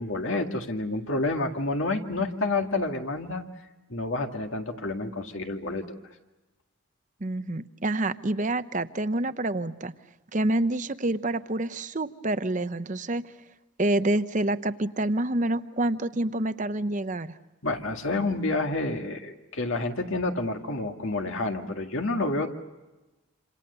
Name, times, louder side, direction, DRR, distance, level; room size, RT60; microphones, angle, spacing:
voice 1, 0.0-3.5 3.9-5.9 17.6-22.5, left 2 dB, 65° left, 4 dB, 2.0 m, -29 dB
voice 2, 7.2-9.9 10.3-13.3 13.8-17.3, right 2 dB, 35° right, 12 dB, 0.8 m, -27 dB
27.5 x 27.5 x 6.8 m, 1.1 s
head